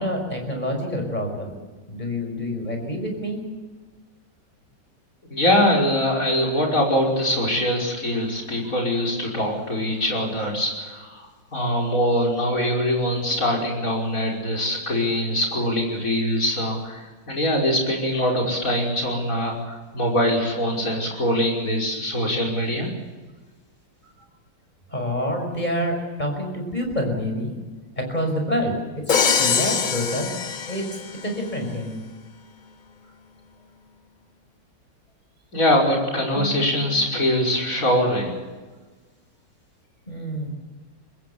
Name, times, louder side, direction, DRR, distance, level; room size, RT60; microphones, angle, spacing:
voice 1, 0.0-1.5 1.9-3.4 24.9-27.6 28.0-30.3 30.7-30.9 31.2-32.0 36.3-36.8 40.1-40.5, equal, 20° left, 3 dB, 5.8 m, -27 dB
voice 2, 5.3-11.3 11.5-22.9 35.5-38.3, left 1 dB, 45° left, 1 dB, 5.9 m, -23 dB
Crash cymbal, 29.1-31.3, left 6 dB, 75° left, 0.4 m, -23 dB
23.5 x 20.5 x 7.1 m, 1.3 s
omnidirectional pair, 2.0 m